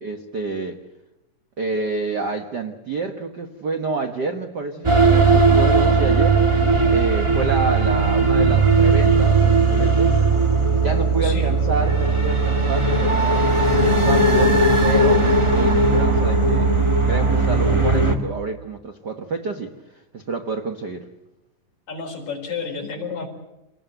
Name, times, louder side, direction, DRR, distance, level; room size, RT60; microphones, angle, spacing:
voice 1, 0.0-0.8 1.6-6.4 6.9-10.2 10.8-21.1, right 4 dB, 65° right, 6 dB, 1.0 m, -28 dB
sound 1, 4.8-18.1, right 3 dB, 20° right, 0.7 m, -17 dB
voice 2, 11.2-11.6 21.9-23.3, left 5 dB, 60° left, 1 dB, 5.4 m, -31 dB
26.5 x 19.0 x 8.0 m, 0.93 s
omnidirectional pair, 3.9 m